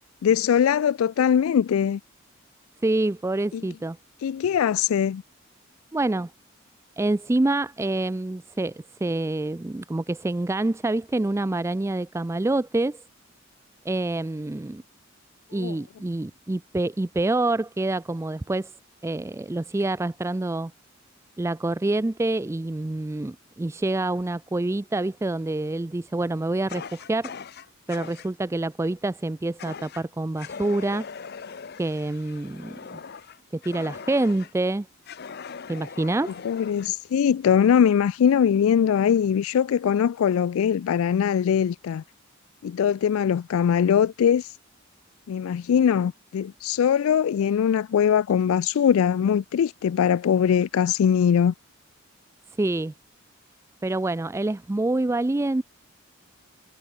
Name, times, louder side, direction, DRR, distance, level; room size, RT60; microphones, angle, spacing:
voice 1, 0.2-2.0 3.5-3.6 4.2-5.2 15.5-15.8 36.4-42.0 42.6-44.5 45.3-51.5, left 8 dB, 90° left, 0.3 m, -21 dB
voice 2, 2.8-4.0 5.9-6.3 7.0-13.0 13.9-14.8 15.5-18.7 19.0-20.7 21.4-27.3 27.9-31.1 31.8-33.0 33.5-34.9 35.7-36.3 52.6-52.9 53.8-55.6, right 2 dB, 15° right, 0.3 m, -26 dB
Fire, 26.7-28.3 29.6-30.0 30.4-34.5 35.0-36.9, left 6 dB, 50° left, 0.7 m, -40 dB
head